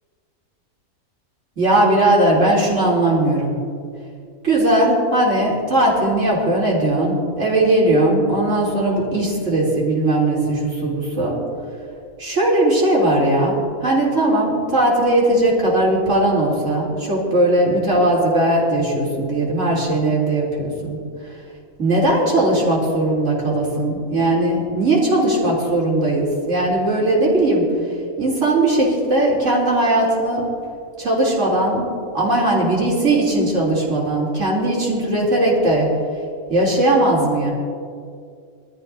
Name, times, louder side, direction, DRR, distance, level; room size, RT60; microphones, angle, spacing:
voice 1, 1.6-3.5 4.4-11.4 12.2-21.0 21.8-27.7 28.2-30.5 31.0-31.8 32.1-35.9 36.5-37.5, right 1 dB, 55° right, -5 dB, 3.7 m, -18 dB
22.5 x 13.5 x 2.7 m, 2.3 s
omnidirectional pair, 1.5 m